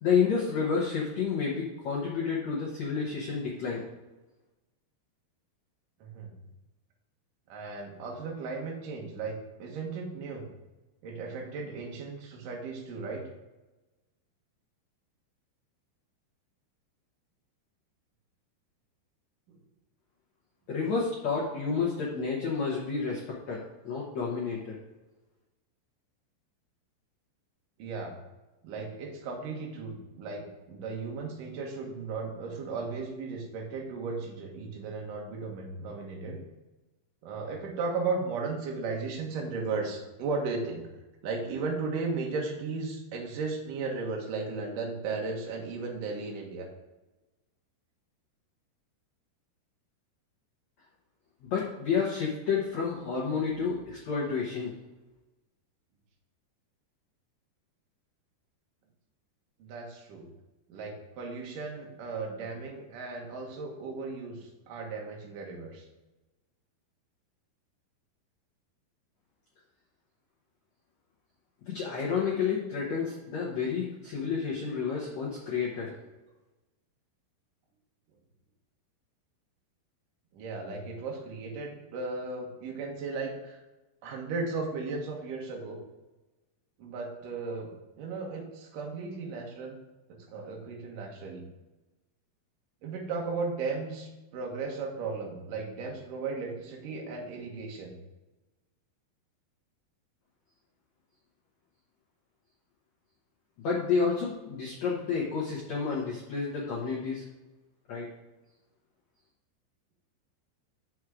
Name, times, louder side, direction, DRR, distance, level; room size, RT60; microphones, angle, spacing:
voice 1, 0.0-3.8 20.7-24.7 51.4-54.7 71.7-75.9 103.6-107.2 107.9-108.1, left 5 dB, 80° left, -4 dB, 1.5 m, -30 dB
voice 2, 7.5-10.5 11.0-13.3 19.5-19.6 27.8-28.1 28.6-36.4 37.2-40.8 41.2-46.7 59.6-60.3 60.7-65.9 80.3-83.6 84.0-85.8 86.8-87.7 88.0-89.8 90.1-91.5 92.8-97.9, right 4 dB, 60° right, 0 dB, 2.5 m, -36 dB
6.5 x 6.1 x 4.9 m, 1.1 s
omnidirectional pair, 5.1 m